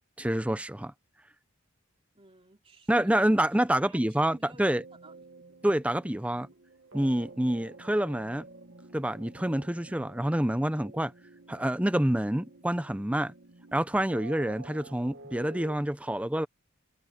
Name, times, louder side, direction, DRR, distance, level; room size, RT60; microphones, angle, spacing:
voice 1, 0.2-0.9 2.9-4.8 5.6-6.5 6.9-8.5 8.9-11.1 11.5-13.3 13.7-16.5, right 1 dB, 5° right, 0.6 m, -27 dB
voice 2, 2.1-3.1 3.9-5.3, right 2 dB, 25° right, 3.0 m, -54 dB
sound 1, 4.7-15.8, right 3 dB, 55° right, 1.3 m, -50 dB
head